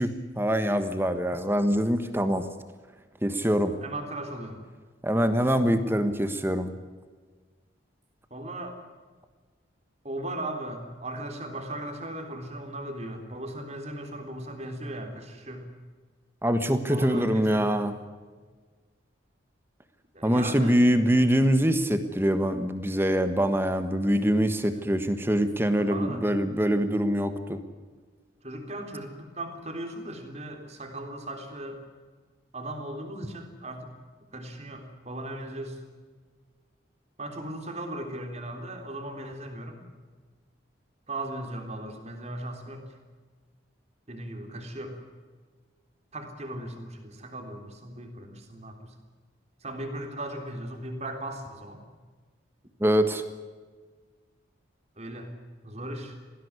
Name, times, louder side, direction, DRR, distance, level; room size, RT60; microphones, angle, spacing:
voice 1, 0.0-2.4 3.2-3.7 5.0-6.7 16.4-17.9 20.2-27.6 52.8-53.2, equal, 10° right, 9 dB, 1.4 m, -24 dB
voice 2, 3.8-4.6 8.3-8.8 10.0-15.7 16.9-17.7 20.1-20.8 24.7-24.8 25.8-26.2 28.4-31.8 32.5-33.9 34.3-35.8 37.2-39.8 41.1-42.8 44.1-45.0 46.1-48.9 49.6-51.8 55.0-55.3 55.6-56.2, right 1 dB, 35° right, 4 dB, 3.6 m, -37 dB
20.0 x 16.0 x 9.8 m, 1.4 s
head